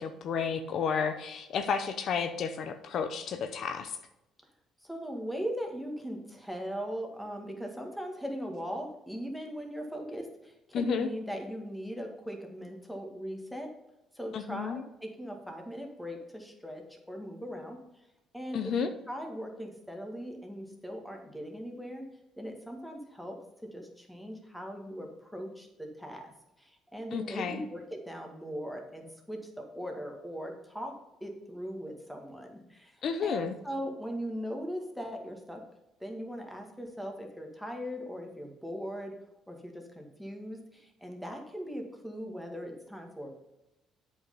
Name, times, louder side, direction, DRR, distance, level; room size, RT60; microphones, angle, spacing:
voice 1, 0.0-4.0 10.7-11.1 14.3-14.8 18.5-18.9 27.1-27.6 33.0-33.5, left 6 dB, 60° left, 8 dB, 0.7 m, -32 dB
voice 2, 4.8-13.7 14.1-18.1 18.3-22.1 22.4-23.4 23.7-26.3 26.6-30.9 31.2-35.6 36.0-39.1 39.5-43.3, equal, ahead, 2 dB, 1.9 m, -39 dB
8.1 x 5.4 x 5.5 m, 0.93 s
cardioid pair, 100°, 0 cm